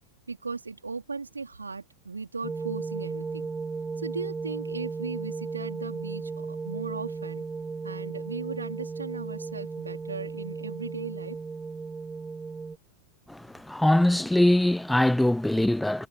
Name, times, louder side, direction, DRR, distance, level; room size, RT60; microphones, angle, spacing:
voice 1, 0.3-3.5 4.0-7.4 7.8-11.4, right 4 dB, 75° right, 3.6 m, -37 dB
sound 1, 2.4-12.8, right 4 dB, 15° right, 0.8 m, -35 dB
voice 2, 13.3-16.1, left 1 dB, 5° left, 1.3 m, -22 dB
figure-of-eight pair, 90°, 0 cm